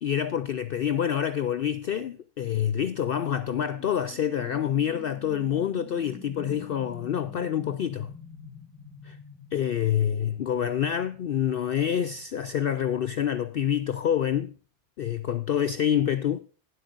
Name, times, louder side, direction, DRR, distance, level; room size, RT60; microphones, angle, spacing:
voice 1, 0.0-8.1 9.0-9.2 9.5-14.5 15.0-16.4, left 9 dB, 55° left, 0.8 m, -27 dB
sound 1, 3.8-14.1, left 2 dB, 10° left, 1.7 m, -48 dB
19.5 x 8.0 x 2.5 m
omnidirectional pair, 1.2 m